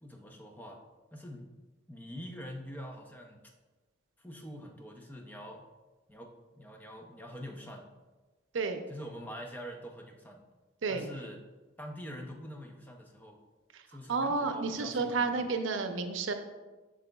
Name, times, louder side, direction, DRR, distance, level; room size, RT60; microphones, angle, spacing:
voice 1, 0.0-0.8 1.1-1.5 1.9-3.4 4.2-5.6 6.1-7.9 8.9-10.4 10.9-11.4 11.8-13.4 13.9-15.5, equal, 10° left, 2 dB, 0.6 m, -45 dB
voice 2, 14.1-16.3, right 4 dB, 90° right, 7 dB, 0.6 m, -31 dB
7.5 x 6.4 x 2.3 m, 1.2 s
head